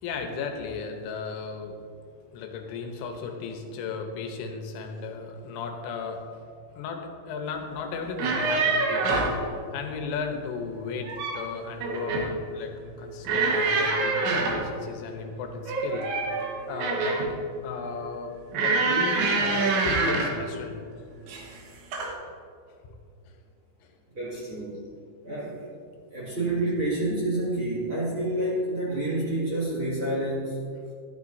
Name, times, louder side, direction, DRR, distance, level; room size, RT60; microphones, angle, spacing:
voice 1, 0.0-1.8 2.3-6.4 6.8-17.2 17.6-20.8 22.8-23.0 23.8-23.9, left 5 dB, 80° left, 4 dB, 3.3 m, -35 dB
sound 1, 8.0-9.4 10.8-11.5 11.8-12.3 13.2-14.7 15.6-17.3 18.5-20.4 21.3-21.6 21.9-22.1, right 3 dB, 75° right, 3.6 m, -26 dB
voice 2, 24.1-24.8 25.2-25.7 26.1-30.7, right 1 dB, 40° right, -7 dB, 1.9 m, -28 dB
12.5 x 12.5 x 2.7 m, 2.3 s
omnidirectional pair, 5.5 m